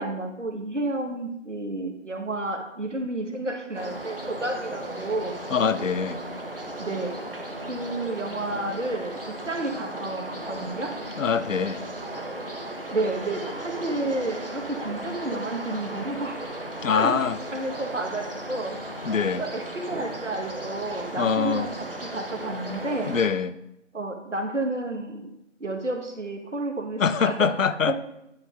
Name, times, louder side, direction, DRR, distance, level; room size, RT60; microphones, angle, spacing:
voice 1, 0.0-5.4 6.8-7.2 7.7-10.9 12.9-16.4 16.9-17.1 17.5-18.8 19.2-21.7 22.0-23.1 23.9-25.3 25.6-27.5 27.9-28.0, right 2 dB, 70° right, 4 dB, 1.2 m, -31 dB
sound 1, 3.7-23.3, right 1 dB, 45° right, 0.8 m, -36 dB
voice 2, 5.5-6.2 11.2-11.9 16.8-17.4 19.0-19.4 21.2-21.7 23.1-23.6 27.0-28.0, left 6 dB, 80° left, 14 dB, 0.5 m, -24 dB
9.5 x 6.5 x 2.4 m, 0.86 s
figure-of-eight pair, 170°, 38 cm